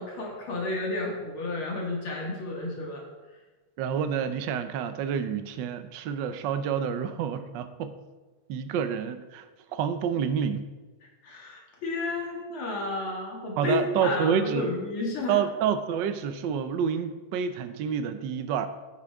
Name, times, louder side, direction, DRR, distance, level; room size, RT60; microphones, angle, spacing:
voice 1, 0.0-3.0 11.0-15.5, left 2 dB, 75° left, -2 dB, 2.7 m, -32 dB
voice 2, 3.8-8.0 8.5-9.5 9.7-10.7 13.6-14.7 15.3-18.7, right 7 dB, 70° right, 10 dB, 1.3 m, -28 dB
11.5 x 9.1 x 3.6 m, 1.2 s
omnidirectional pair, 2.3 m